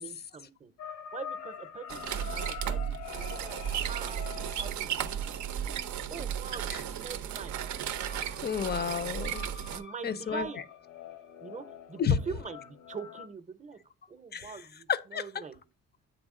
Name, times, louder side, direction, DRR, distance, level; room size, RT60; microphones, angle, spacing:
voice 1, 0.0-5.2 6.1-7.6 9.7-10.7 11.4-13.8 14.1-15.6, right 5 dB, 25° right, 0.6 m, -43 dB
sound 1, 0.8-13.3, left 9 dB, 80° left, 0.7 m, -46 dB
sound 2, 1.9-9.8, right 9 dB, 75° right, 0.5 m, -34 dB
voice 2, 8.4-9.5 10.0-10.5 12.0-12.2 14.3-14.5 14.9-15.2, left 7 dB, 35° left, 0.4 m, -30 dB
8.0 x 3.5 x 3.6 m
cardioid pair, 90°, 30 cm